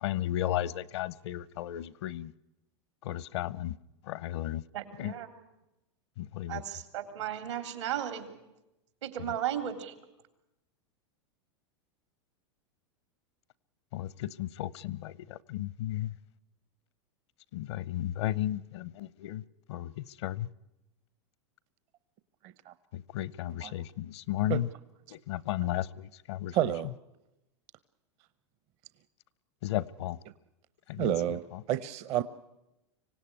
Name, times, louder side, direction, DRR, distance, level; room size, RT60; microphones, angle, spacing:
voice 1, 0.0-2.3 3.0-3.7 4.1-4.6 5.0-5.1 6.2-6.6 13.9-16.1 17.5-19.4 19.7-20.5 22.9-24.7 25.1-26.7 29.6-30.2 30.9-31.1 31.5-31.6, left 13 dB, 70° left, 0.8 m, -34 dB
voice 2, 4.7-5.3 6.5-8.3 9.0-9.9, right 10 dB, 85° right, 3.4 m, -35 dB
voice 3, 26.5-26.9 31.0-32.2, right 12 dB, 50° right, 0.8 m, -29 dB
25.0 x 17.0 x 9.8 m
hypercardioid pair, 115°, 15 cm